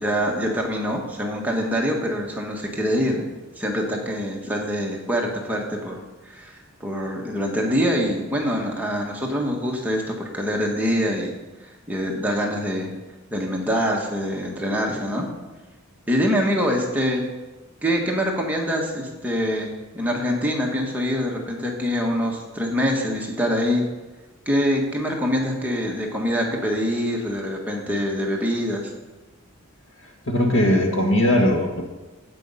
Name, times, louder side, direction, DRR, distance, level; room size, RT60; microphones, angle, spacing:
voice 1, 0.0-3.3 3.6-6.0 6.2-11.3 11.6-12.9 13.3-15.3 16.1-17.2 17.8-23.8 24.4-28.9, equal, 10° right, -1 dB, 1.4 m, -24 dB
voice 2, 30.3-31.9, left 1 dB, 65° left, 3 dB, 1.6 m, -19 dB
15.5 x 5.4 x 5.5 m, 1.2 s
head